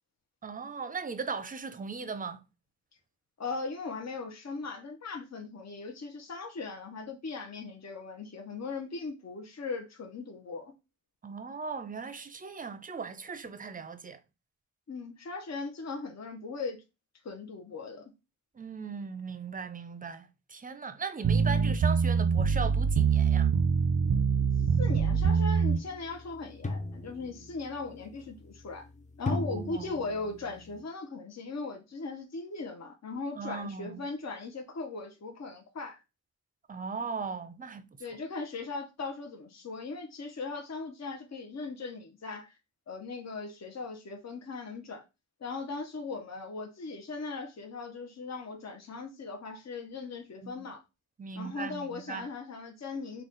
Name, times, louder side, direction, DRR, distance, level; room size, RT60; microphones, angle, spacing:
voice 1, 0.4-2.4 11.2-14.2 18.5-23.5 29.3-29.9 33.4-34.1 36.7-37.8 50.4-50.7 51.2-52.3, right 5 dB, 30° right, 0.4 m, -38 dB
voice 2, 3.4-10.7 14.9-16.8 17.2-18.1 24.8-28.9 29.2-36.0 38.0-42.5 42.9-45.0 45.4-50.8 51.3-53.2, left 3 dB, 60° left, 0.7 m, -39 dB
sound 1, 21.2-25.8, right 6 dB, 80° right, 0.5 m, -24 dB
sound 2, 24.0-30.8, left 2 dB, 25° left, 0.5 m, -40 dB
3.9 x 2.2 x 3.8 m
wide cardioid pair, 85°, 29 cm